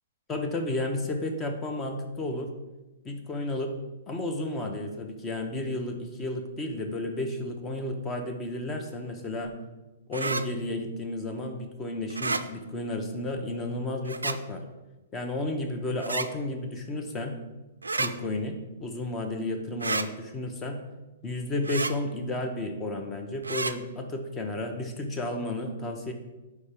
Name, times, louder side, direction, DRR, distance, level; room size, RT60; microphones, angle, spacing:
voice 1, 0.3-2.5 3.0-3.7 4.1-9.5 10.1-14.6 15.1-17.4 18.0-20.8 21.2-26.1, left 1 dB, 20° left, 4 dB, 0.8 m, -32 dB
sound 1, 10.1-10.4 12.1-12.4 14.1-14.4 16.0-16.3 17.8-18.1 19.8-20.1 21.6-21.9 23.4-23.7, right 3 dB, 90° right, 0.3 m, -29 dB
4.6 x 4.2 x 5.2 m, 1.1 s
hypercardioid pair, 120°, 0 cm